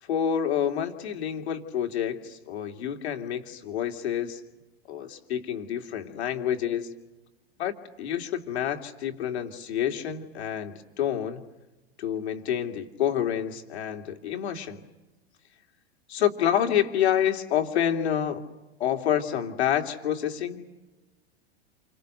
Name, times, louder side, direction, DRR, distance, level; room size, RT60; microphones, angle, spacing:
voice 1, 0.0-4.4 4.9-6.9 7.6-11.4 12.0-14.8 16.1-18.4 18.8-20.6, left 9 dB, 75° left, 4 dB, 2.8 m, -28 dB
28.5 x 25.0 x 6.7 m, 1.1 s
hypercardioid pair, 105°, 32 cm